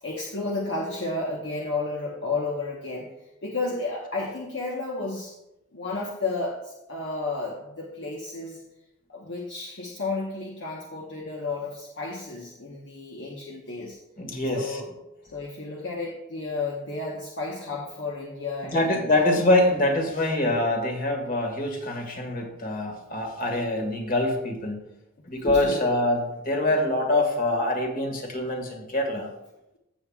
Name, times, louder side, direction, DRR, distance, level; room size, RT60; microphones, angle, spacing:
voice 1, 0.0-3.1 3.4-5.3 5.7-8.6 9.1-14.0 14.5-14.9 15.3-19.3 25.5-26.0, left 3 dB, 60° left, -2 dB, 1.1 m, -32 dB
voice 2, 14.2-14.8 18.7-24.9 25.3-29.3, left 1 dB, 45° left, 2 dB, 1.8 m, -25 dB
15.0 x 7.2 x 2.4 m, 0.91 s
head